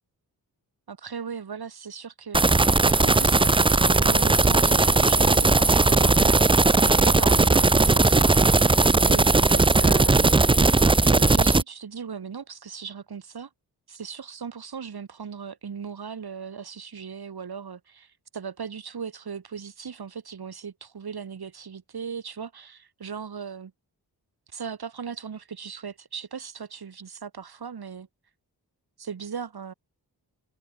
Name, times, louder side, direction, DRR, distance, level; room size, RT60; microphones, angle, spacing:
voice 1, 0.9-6.4 7.0-10.4 11.0-13.5 13.9-23.7 24.5-28.1 29.0-29.7, right 6 dB, 70° right, 5.6 m, -38 dB
sound 1, 2.3-11.6, right 3 dB, 15° right, 0.5 m, -18 dB
wide cardioid pair, 120°, 39 cm